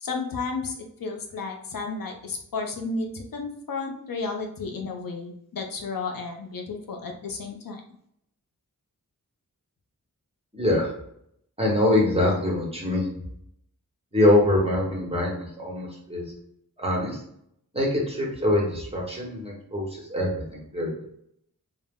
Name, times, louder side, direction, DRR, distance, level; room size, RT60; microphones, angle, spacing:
voice 1, 0.0-7.8, left 4 dB, 70° left, 3 dB, 0.5 m, -33 dB
voice 2, 10.5-10.9 11.6-13.2 14.1-16.2 16.8-17.2 17.7-21.0, left 1 dB, 15° right, -3 dB, 0.9 m, -24 dB
2.1 x 2.0 x 3.5 m, 0.73 s
wide cardioid pair, 45°, 36 cm